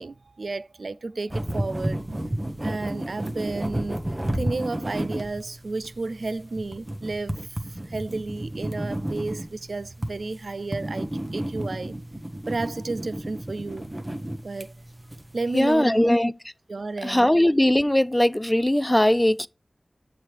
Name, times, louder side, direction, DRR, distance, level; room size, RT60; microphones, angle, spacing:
voice 1, 0.0-2.0 2.6-4.0 4.3-7.4 7.7-11.9 12.5-13.9 14.4-14.7 15.3-16.1 16.7-17.3, right 3 dB, 80° right, 0.3 m, -32 dB
sound 1, 1.3-15.6, right 1 dB, 30° right, 0.9 m, -32 dB
voice 2, 15.5-16.3 17.0-19.5, left 1 dB, 15° left, 0.3 m, -20 dB
7.5 x 4.5 x 3.3 m
wide cardioid pair, 45°, 0 cm